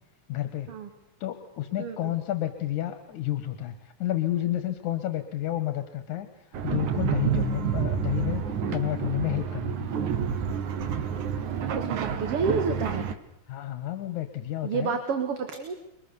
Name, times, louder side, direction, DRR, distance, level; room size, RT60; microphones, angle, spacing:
voice 1, 0.3-0.7 1.2-6.3 6.6-8.4 8.7-10.0 13.5-15.0, left 13 dB, 85° left, 9 dB, 2.9 m, -30 dB
voice 2, 1.8-2.1 11.7-13.1 14.6-15.7, right 5 dB, 55° right, 7 dB, 2.7 m, -29 dB
sound 1, 6.5-13.1, right 7 dB, 90° right, 3.0 m, -29 dB
29.0 x 23.5 x 7.1 m, 0.84 s
omnidirectional pair, 3.3 m